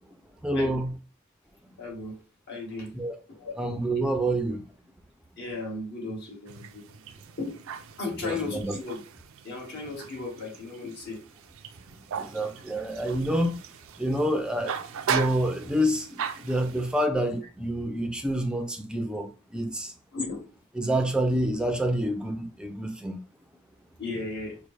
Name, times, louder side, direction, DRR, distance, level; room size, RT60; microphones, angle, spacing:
voice 1, 0.4-0.9 2.9-3.2 3.6-4.6 8.2-8.8 12.1-13.6 14.0-14.7 15.1-19.9 20.8-23.2, right 1 dB, 5° right, 0.5 m, -27 dB
voice 2, 1.8-2.2 2.5-2.9 3.4-3.5 5.4-6.8 7.4-7.6 8.0-9.0 9.4-11.2 20.1-20.5 24.0-24.6, left 3 dB, 55° left, 1.5 m, -35 dB
sound 1, 6.5-17.1, right 7 dB, 75° right, 0.4 m, -38 dB
5.4 x 2.1 x 3.2 m
head